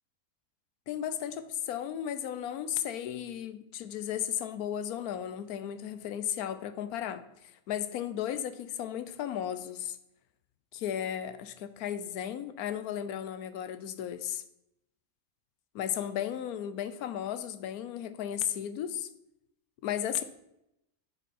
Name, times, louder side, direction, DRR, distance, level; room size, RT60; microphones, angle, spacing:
voice 1, 0.9-7.2 7.7-10.0 10.7-14.4 15.7-19.1 19.8-20.2, left 10 dB, 90° left, 12 dB, 1.2 m, -35 dB
8.4 x 7.0 x 4.3 m, 0.84 s
omnidirectional pair, 1.5 m